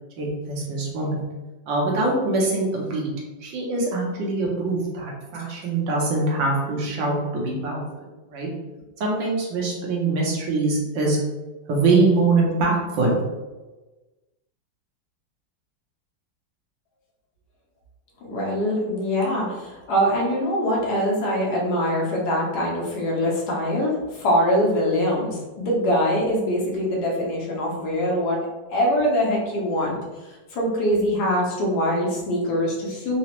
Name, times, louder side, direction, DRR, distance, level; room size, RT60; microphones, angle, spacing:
voice 1, 0.2-1.2 1.7-3.1 3.4-7.8 8.3-8.5 9.0-11.2 11.7-13.2, right 3 dB, 80° right, -2 dB, 1.5 m, -23 dB
voice 2, 18.2-28.4 28.7-30.0 30.5-33.2, equal, 65° left, -3 dB, 1.2 m, -23 dB
3.9 x 2.0 x 2.9 m, 1.2 s
omnidirectional pair, 2.1 m